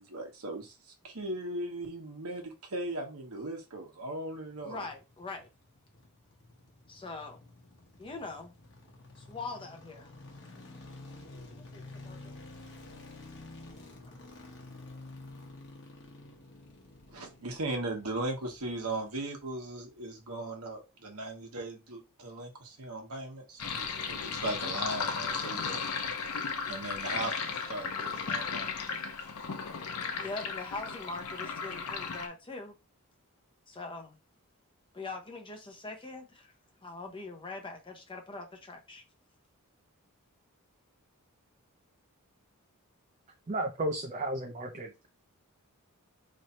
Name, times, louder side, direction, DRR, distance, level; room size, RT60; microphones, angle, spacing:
voice 1, 0.0-4.8 17.1-25.8 26.2-28.7, right 2 dB, 70° right, 1.1 m, -38 dB
sound 1, 4.5-19.7 19.9-20.0, left 2 dB, 55° left, 1.1 m, -51 dB
voice 2, 4.6-5.5 6.9-7.5 8.0-8.5 9.2-10.1 11.7-12.4 30.2-32.7 33.7-34.2 34.9-36.5 36.8-39.0, left 3 dB, 25° left, 0.8 m, -42 dB
Sink (filling or washing), 23.6-32.3, left 5 dB, 75° left, 0.6 m, -35 dB
voice 3, 43.5-45.1, right 1 dB, 35° right, 0.5 m, -34 dB
3.2 x 2.7 x 4.2 m
head